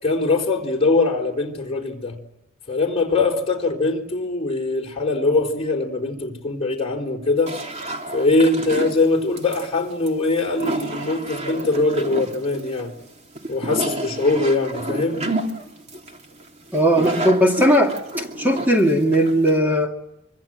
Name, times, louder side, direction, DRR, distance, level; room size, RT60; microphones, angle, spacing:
voice 1, 0.0-2.2 2.7-7.5 8.1-12.9 13.5-15.3, left 3 dB, 30° left, 4.2 m, -22 dB
sound 1, 7.5-19.6, right 1 dB, 35° right, 3.3 m, -30 dB
voice 2, 16.7-19.9, equal, 10° right, 2.3 m, -18 dB
26.0 x 25.0 x 7.7 m
head